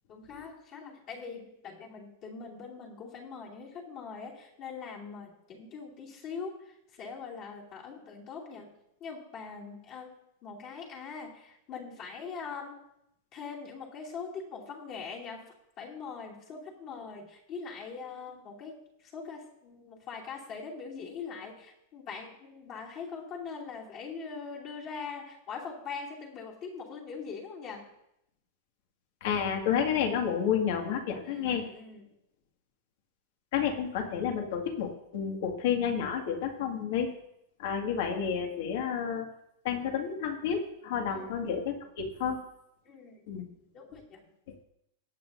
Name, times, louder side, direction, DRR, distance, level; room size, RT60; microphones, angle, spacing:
voice 1, 0.1-8.7 9.0-12.8 13.3-18.8 19.1-27.9 31.2-32.0 41.1-41.4 42.8-43.2 43.7-44.2, left 5 dB, 35° left, -3 dB, 2.6 m, -42 dB
voice 2, 29.2-31.6 33.5-37.1 37.6-39.3 39.6-42.4 43.3-43.5, left 7 dB, 60° left, 3 dB, 2.0 m, -30 dB
19.0 x 8.4 x 2.7 m, 0.79 s
supercardioid pair, 160°, 0 cm